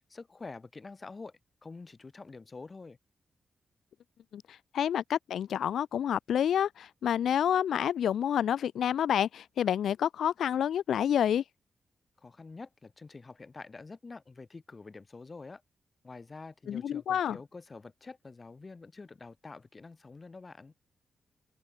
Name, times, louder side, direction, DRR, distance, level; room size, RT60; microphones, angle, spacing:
voice 1, 0.1-3.0 12.2-15.6 16.0-20.7, left 3 dB, 30° left, 7.5 m, -47 dB
voice 2, 4.7-11.4 16.7-17.4, left 9 dB, 85° left, 0.8 m, -28 dB
open air
cardioid pair, 105°, 0 cm